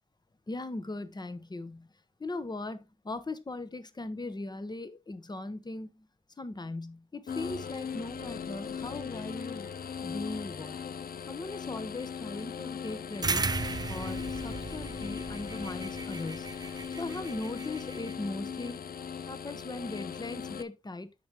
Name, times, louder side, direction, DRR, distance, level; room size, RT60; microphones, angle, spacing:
voice 1, 0.5-1.9 2.2-6.1 6.4-9.7 10.0-10.8 11.3-13.5 13.9-16.5 17.0-18.8 19.2-21.1, left 2 dB, 30° left, 0.9 m, -39 dB
sound 1, 7.3-20.6, left 7 dB, 85° left, 0.5 m, -39 dB
sound 2, 13.2-18.1, right 4 dB, 25° right, 0.4 m, -36 dB
8.5 x 5.4 x 2.9 m
cardioid pair, 65°, 15 cm